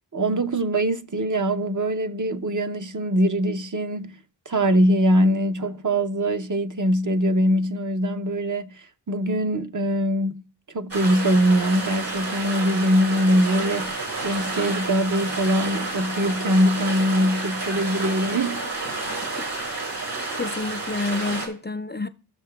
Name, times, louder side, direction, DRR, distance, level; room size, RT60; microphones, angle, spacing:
voice 1, 0.1-4.2 4.5-10.4 10.7-18.6, equal, 45° right, 0.7 m, -22 dB
sound 1, 10.9-21.5, right 3 dB, 70° right, 4.6 m, -30 dB
voice 2, 20.4-22.1, left 3 dB, 25° left, 0.4 m, -28 dB
17.5 x 6.6 x 2.3 m
wide cardioid pair, 45°, 43 cm